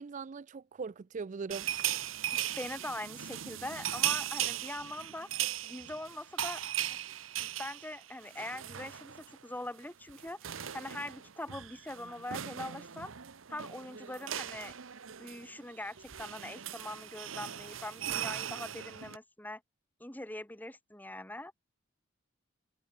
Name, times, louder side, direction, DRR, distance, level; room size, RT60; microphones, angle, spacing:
voice 1, 0.0-1.7, right 5 dB, 40° right, 0.4 m, -40 dB
sound 1, 1.5-9.4 9.6-9.8 10.1-19.2, right 11 dB, 85° right, 0.9 m, -38 dB
voice 2, 2.6-5.3 5.6-6.6 7.4-13.1 13.5-14.7 15.2-19.6 20.0-21.5, left 1 dB, 10° left, 2.3 m, -42 dB
head